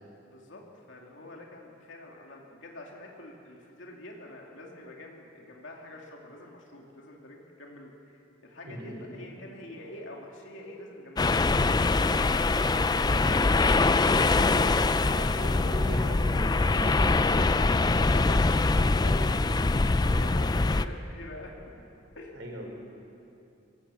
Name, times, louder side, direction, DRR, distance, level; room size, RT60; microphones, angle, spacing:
voice 1, 0.3-12.6 16.5-18.7 19.0-19.8 20.0-21.7 22.2-22.3, left 1 dB, 70° left, -1 dB, 2.7 m, -45 dB
voice 2, 8.6-9.1 13.6-17.1 22.3-22.7, right 1 dB, 70° right, 1 dB, 4.5 m, -40 dB
sound 1, 11.2-20.9, left 3 dB, 20° left, 0.4 m, -23 dB
23.5 x 16.5 x 7.0 m, 2.7 s
head